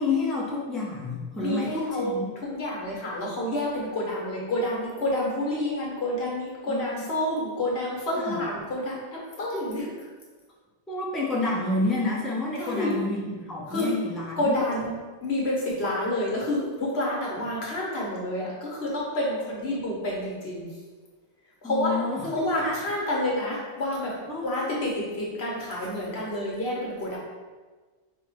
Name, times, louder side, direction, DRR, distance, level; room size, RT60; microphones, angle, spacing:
voice 1, 0.0-2.3 6.7-7.0 8.3-8.4 10.9-14.6 21.6-22.8 24.3-24.5, left 2 dB, ahead, -3 dB, 0.4 m, -29 dB
voice 2, 1.3-2.1 2.5-9.9 12.6-12.9 13.7-13.9 14.4-20.7 21.6-22.0 22.3-24.1 24.4-27.2, left 1 dB, 80° left, -4 dB, 1.3 m, -29 dB
4.3 x 2.1 x 4.5 m, 1.4 s
omnidirectional pair, 1.1 m